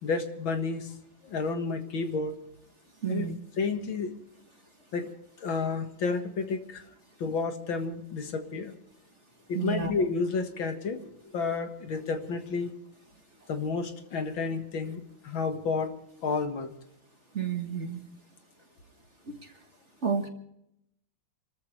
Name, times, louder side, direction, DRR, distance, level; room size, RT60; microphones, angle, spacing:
voice 1, 0.0-0.9 1.2-2.3 3.1-3.3 3.6-4.2 4.9-5.1 5.4-6.8 7.2-8.8 9.5-12.7 13.5-15.9 16.2-16.7, left 4 dB, 70° left, 6 dB, 2.4 m, -31 dB
voice 2, 3.0-3.4 9.5-9.9 17.3-18.1 19.3-19.5 20.0-20.3, right 7 dB, 35° right, 5 dB, 1.6 m, -30 dB
29.0 x 13.5 x 3.3 m, 0.78 s
omnidirectional pair, 2.3 m